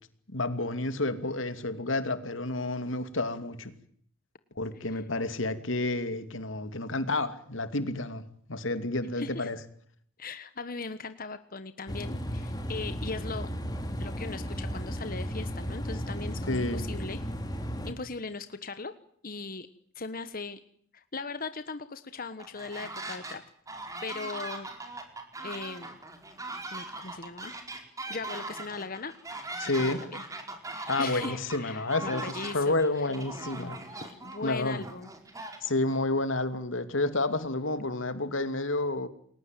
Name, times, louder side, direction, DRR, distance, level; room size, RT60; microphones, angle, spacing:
voice 1, 0.3-3.7 4.6-9.6 16.5-16.9 29.6-30.0 30.9-32.2 32.5-33.8 34.4-34.8 35.6-39.1, left 2 dB, 85° left, 2.7 m, -30 dB
voice 2, 9.2-9.5 10.2-13.5 14.0-17.2 17.8-18.9 19.2-19.7 19.9-20.6 20.9-23.4 24.0-24.7 25.4-26.0 26.7-27.6 28.1-29.1 29.8-30.3 30.6-33.1 34.0-35.1, left 4 dB, 45° left, 1.4 m, -39 dB
sound 1, 11.9-17.9, equal, 20° left, 3.5 m, -34 dB
sound 2, 22.4-23.4 23.7-36.0, right 2 dB, 15° right, 4.7 m, -40 dB
29.5 x 21.0 x 9.2 m
head